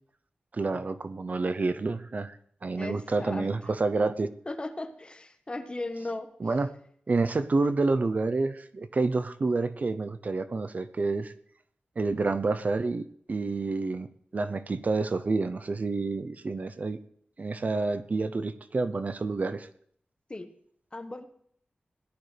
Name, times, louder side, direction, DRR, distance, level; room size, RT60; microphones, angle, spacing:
voice 1, 0.5-4.3 6.4-6.7 7.1-11.3 12.0-17.0 17.4-19.7, right 3 dB, 50° right, 12 dB, 0.6 m, -29 dB
voice 2, 2.8-3.5 4.5-6.3 20.3-20.5 20.9-21.3, left 2 dB, 30° left, 7 dB, 1.2 m, -36 dB
17.5 x 11.5 x 3.3 m, 0.64 s
wide cardioid pair, 100°, 3 cm